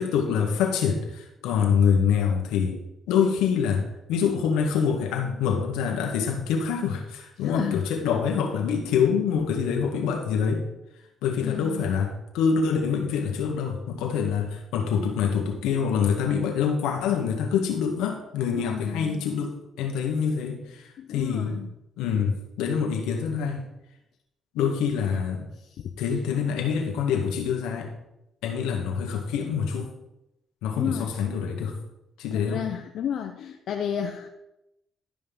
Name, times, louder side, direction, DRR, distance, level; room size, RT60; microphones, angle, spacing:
voice 1, 0.0-2.8 3.1-10.7 11.2-21.6 22.0-23.6 24.5-25.5 26.0-27.9 28.4-29.9 30.6-31.8 32.2-32.6, left 6 dB, 90° left, 2 dB, 1.8 m, -25 dB
voice 2, 7.4-7.9 11.4-12.1 18.5-19.2 21.0-21.7 25.6-25.9 30.8-31.1 32.3-34.3, left 9 dB, 70° left, 5 dB, 0.7 m, -32 dB
12.0 x 5.5 x 5.5 m, 0.89 s
supercardioid pair, 70°, 0 cm